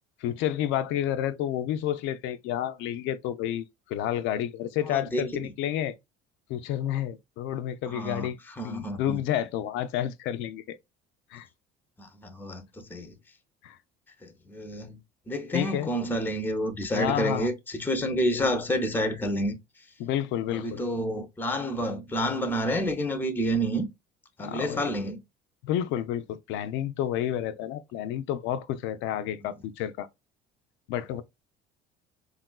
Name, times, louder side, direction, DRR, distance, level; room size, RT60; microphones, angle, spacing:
voice 1, 0.2-5.9 6.5-8.4 8.6-10.8 11.3-11.5 13.6-13.8 15.5-15.9 16.9-17.5 20.0-20.8 24.4-24.9 25.6-30.1 30.9-31.2, left 11 dB, 65° left, 0.4 m, -30 dB
voice 2, 4.8-5.4 7.9-9.2 12.0-13.1 14.2-15.0 15.3-19.6 20.5-23.9 24.4-25.2 29.4-29.5, equal, 10° left, 0.6 m, -29 dB
3.6 x 2.3 x 2.2 m
supercardioid pair, 80°, 21 cm